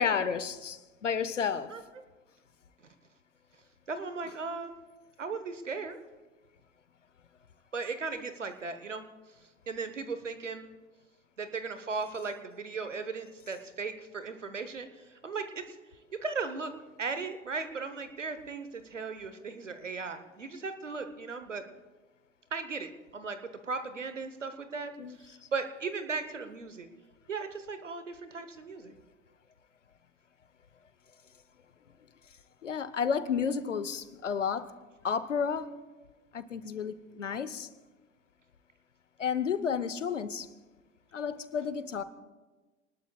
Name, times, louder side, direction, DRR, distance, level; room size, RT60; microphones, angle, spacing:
voice 1, 0.0-1.7 25.0-25.2 32.6-34.7 35.0-35.8 36.3-37.7 39.2-40.5 41.1-42.0, left 6 dB, 85° left, 0.9 m, -31 dB
voice 2, 3.9-4.8 5.2-6.0 7.7-9.1 9.7-10.7 11.4-15.7 16.1-16.7 17.0-21.6 22.5-23.4 23.6-24.9 25.2-26.9 27.3-28.9, right 4 dB, 85° right, 1.2 m, -37 dB
28.0 x 19.5 x 2.4 m
figure-of-eight pair, 70°, 36 cm